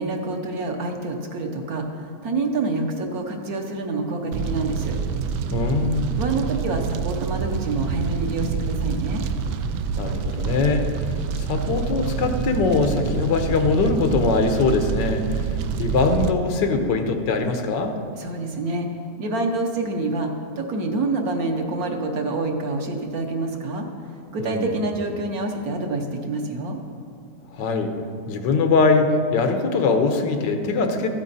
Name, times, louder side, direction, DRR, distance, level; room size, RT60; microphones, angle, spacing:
voice 1, 0.0-5.0 6.2-9.2 18.1-26.8, right 2 dB, 60° right, 3 dB, 1.4 m, -27 dB
Fire, 4.3-16.3, right 6 dB, 80° right, 1.2 m, -27 dB
voice 2, 5.5-6.1 10.0-10.9 11.4-15.4 15.8-17.9 24.4-24.7 27.5-27.9 28.3-31.1, left 4 dB, 90° left, 5 dB, 1.6 m, -22 dB
14.0 x 8.9 x 4.1 m, 2.4 s
omnidirectional pair, 1.9 m